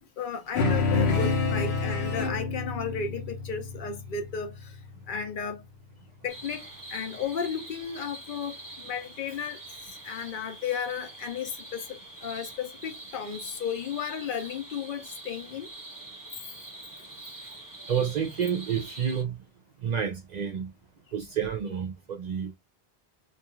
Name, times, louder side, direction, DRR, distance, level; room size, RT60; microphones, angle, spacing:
voice 1, 0.0-4.8 5.1-5.6 6.2-6.6 6.9-9.6 10.0-15.7, left 6 dB, 60° left, 0.7 m, -34 dB
sound 1, 0.5-5.3, left 4 dB, 85° left, 1.0 m, -28 dB
sound 2, 6.3-19.2, right 2 dB, 20° right, 1.0 m, -45 dB
voice 2, 17.9-19.4 19.8-20.7 21.1-22.6, right 7 dB, 55° right, 0.5 m, -29 dB
2.4 x 2.3 x 3.0 m
omnidirectional pair, 1.1 m